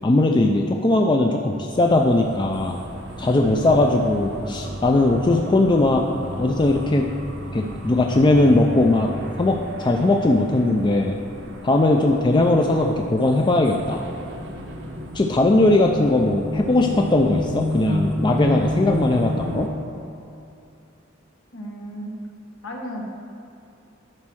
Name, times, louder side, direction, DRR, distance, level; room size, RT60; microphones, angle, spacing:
voice 1, 0.0-2.8 3.2-6.0 6.4-7.1 7.5-11.2 11.6-14.0 15.1-19.7, left 2 dB, 25° left, 1 dB, 0.4 m, -19 dB
sound 1, 1.7-19.7, equal, 65° right, 0.9 m, -32 dB
voice 2, 21.5-22.1 22.6-23.0, equal, 80° left, -1 dB, 1.4 m, -34 dB
10.5 x 4.3 x 6.2 m, 2.7 s
head